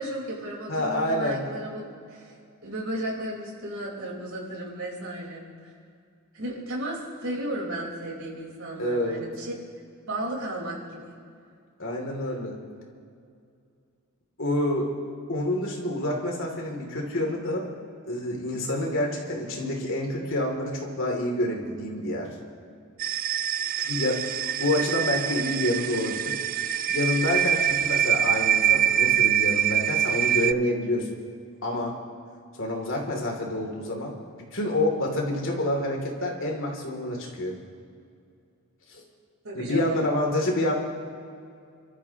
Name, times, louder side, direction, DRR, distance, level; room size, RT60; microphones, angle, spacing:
voice 1, 0.0-2.3 2.6-5.7 6.3-11.1 39.4-40.1, right 1 dB, 70° right, -2 dB, 4.5 m, -34 dB
voice 2, 0.7-1.4 8.8-9.2 11.8-12.6 14.4-14.9 15.3-17.7 18.1-22.3 23.8-24.2 24.6-26.3 26.9-31.1 31.6-32.0 32.6-34.2 34.5-37.6 38.9-39.0 39.5-40.7, left 1 dB, 65° left, 0 dB, 2.9 m, -27 dB
sound 1, 23.0-30.5, right 10 dB, 40° right, 0.4 m, -24 dB
28.5 x 13.5 x 3.0 m, 2.3 s
head